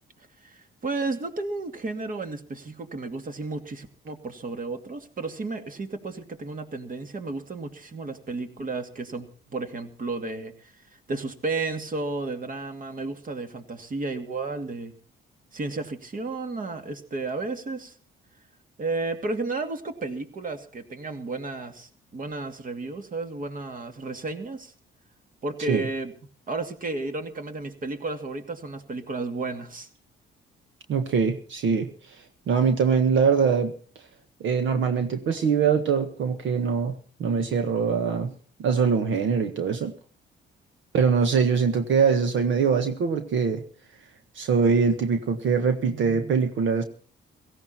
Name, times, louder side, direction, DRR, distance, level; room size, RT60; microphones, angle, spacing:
voice 1, 0.4-10.7 11.1-14.9 15.5-18.0 18.8-24.7 25.4-26.1 26.5-29.9, right 3 dB, 45° right, 7 dB, 2.4 m, -33 dB
voice 2, 30.9-32.2 32.5-33.7 34.4-38.3 38.6-39.9 40.9-43.6 44.3-46.8, right 6 dB, 75° right, 7 dB, 1.6 m, -23 dB
17.0 x 16.0 x 4.4 m, 0.40 s
cardioid pair, 90°, 20 cm